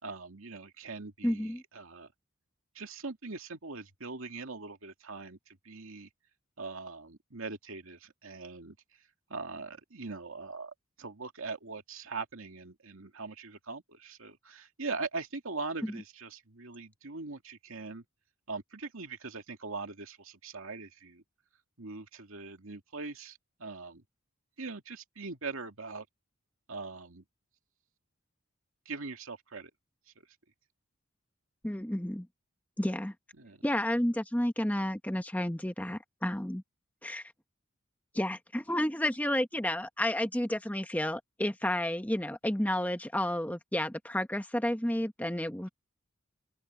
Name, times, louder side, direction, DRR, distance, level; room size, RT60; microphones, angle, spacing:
voice 1, 0.0-2.1 2.8-5.4 5.6-6.1 6.6-8.7 9.3-18.0 18.5-21.2 21.8-24.0 24.6-26.1 26.7-27.2 28.9-29.7 33.4-33.6, right 3 dB, 85° right, 2.3 m, -41 dB
voice 2, 1.2-1.6 15.8-16.0 31.6-32.3 32.8-33.1 33.6-36.6 37.0-37.3 38.1-45.7, left 1 dB, 5° left, 1.0 m, -31 dB
open air
head